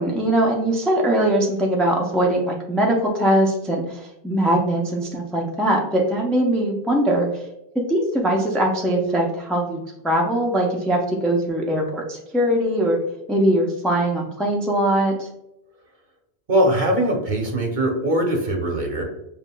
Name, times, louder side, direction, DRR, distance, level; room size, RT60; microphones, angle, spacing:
voice 1, 0.0-7.3 7.7-13.0 13.3-15.3, right 1 dB, ahead, -1 dB, 0.4 m, -21 dB
voice 2, 16.5-19.0, right 1 dB, 50° right, 1 dB, 1.0 m, -21 dB
7.2 x 2.5 x 2.2 m, 0.85 s
omnidirectional pair, 1.1 m